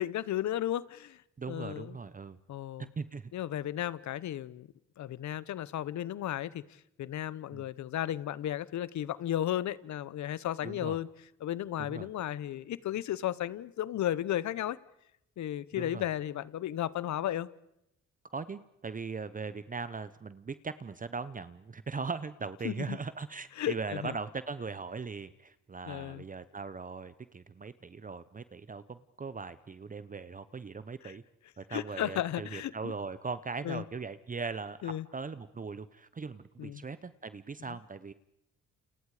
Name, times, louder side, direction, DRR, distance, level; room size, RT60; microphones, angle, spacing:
voice 1, 0.0-1.2 1.5-1.9 2.5-2.9 3.3-4.7 5.0-6.6 7.0-11.1 11.4-14.8 15.4-17.5 22.6-23.0 23.6-24.1 25.9-26.2 31.7-32.7 33.6-33.8 34.8-35.1 36.6-36.8 37.7-37.8, left 12 dB, 70° left, 19 dB, 1.0 m, -34 dB
voice 2, 1.4-2.4 2.8-3.3 7.5-7.7 10.6-11.0 11.8-12.1 15.7-16.0 18.3-31.2 31.6-38.1, right 4 dB, 25° right, 14 dB, 0.9 m, -39 dB
29.5 x 28.5 x 5.0 m, 0.83 s
cardioid pair, 90°, 30 cm